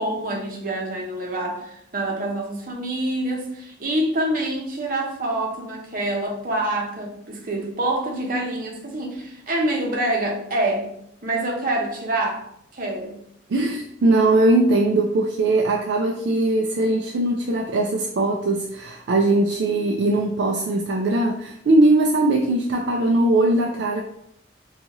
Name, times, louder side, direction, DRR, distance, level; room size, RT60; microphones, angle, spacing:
voice 1, 0.0-10.9 11.2-12.4 12.7-13.2, right 1 dB, 45° right, 0 dB, 0.7 m, -26 dB
voice 2, 13.5-24.0, right 2 dB, 65° right, 1 dB, 0.3 m, -20 dB
3.9 x 2.4 x 2.9 m, 0.73 s
head